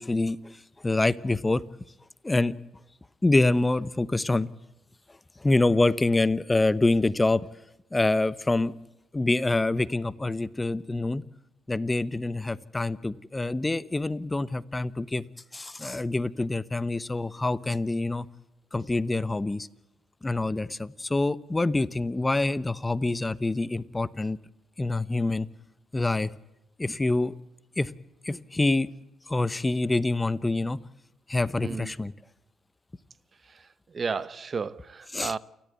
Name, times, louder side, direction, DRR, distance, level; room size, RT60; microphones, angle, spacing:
voice 1, 0.0-1.6 2.2-2.5 3.2-4.5 5.4-7.5 7.9-8.7 9.1-11.2 11.7-15.2 15.5-18.3 18.7-19.7 20.2-24.4 24.8-25.5 25.9-26.3 26.8-27.3 27.8-27.9 28.2-28.9 29.3-30.8 31.3-32.1 35.1-35.3, left 2 dB, 15° left, 0.9 m, -26 dB
voice 2, 33.9-35.4, right 5 dB, 40° right, 0.9 m, -32 dB
29.5 x 13.5 x 8.2 m
cardioid pair, 90°, 0 cm